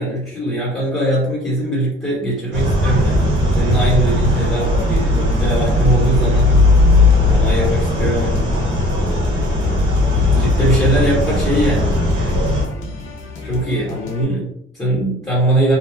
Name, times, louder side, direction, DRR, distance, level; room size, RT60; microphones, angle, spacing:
voice 1, 0.0-6.5 7.3-8.4 10.3-12.0 13.4-15.8, right 1 dB, 15° left, -8 dB, 1.1 m, -20 dB
sound 1, 2.5-12.6, left 2 dB, 90° right, 0.8 m, -17 dB
sound 2, 2.8-14.2, left 1 dB, 80° left, 0.6 m, -32 dB
2.9 x 2.1 x 2.3 m, 0.76 s
cardioid pair, 90°, 20 cm